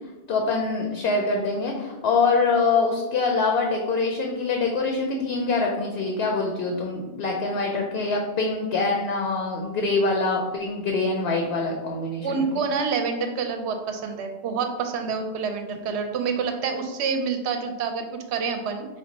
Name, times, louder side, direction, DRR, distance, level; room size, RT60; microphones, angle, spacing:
voice 1, 0.3-12.5, left 3 dB, 65° left, 1 dB, 0.7 m, -24 dB
voice 2, 12.2-18.9, right 5 dB, 70° right, 6 dB, 0.8 m, -27 dB
4.5 x 2.2 x 3.9 m, 1.1 s
omnidirectional pair, 1.2 m